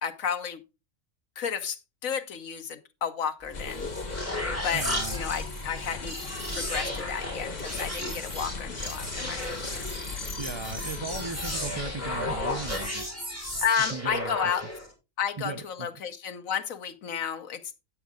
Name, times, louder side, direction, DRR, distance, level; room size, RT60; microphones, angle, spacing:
voice 1, 0.0-0.6 1.4-3.9 4.5-6.1 6.5-10.1 13.6-14.6 15.2-17.8, left 7 dB, 75° left, 8 dB, 1.4 m, -32 dB
sound 1, 3.4-14.9, left 1 dB, 10° left, 4.3 m, -34 dB
sound 2, 3.5-12.9, left 3 dB, 35° left, 1.1 m, -38 dB
voice 2, 4.7-5.2 10.4-13.1 13.9-14.6 15.4-15.9, right 4 dB, 40° right, 8 dB, 0.4 m, -37 dB
9.3 x 8.4 x 3.6 m, 0.27 s
omnidirectional pair, 1.4 m